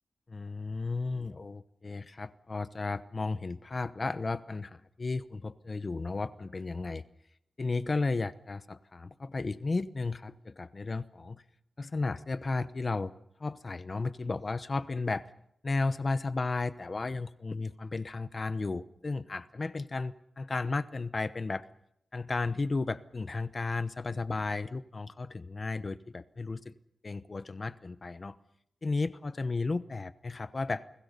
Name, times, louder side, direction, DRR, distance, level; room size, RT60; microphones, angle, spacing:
voice 1, 0.3-7.0 7.6-11.4 11.8-13.1 13.4-15.2 15.6-21.6 22.1-26.7 27.0-28.4 28.8-30.8, left 3 dB, 35° left, 14 dB, 0.9 m, -34 dB
29.5 x 20.5 x 6.9 m, 0.75 s
wide cardioid pair, 155°, 0 cm